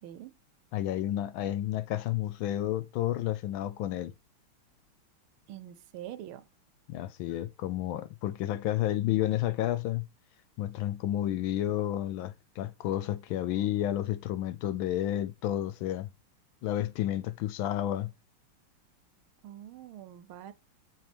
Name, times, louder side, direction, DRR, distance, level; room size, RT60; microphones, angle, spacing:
voice 1, 0.0-0.3 5.5-6.5 19.4-20.5, right 12 dB, 75° right, 1.5 m, -44 dB
voice 2, 0.7-4.1 6.9-10.1 10.6-16.1 16.6-18.1, left 13 dB, 75° left, 1.3 m, -31 dB
7.6 x 6.3 x 3.4 m
omnidirectional pair, 2.3 m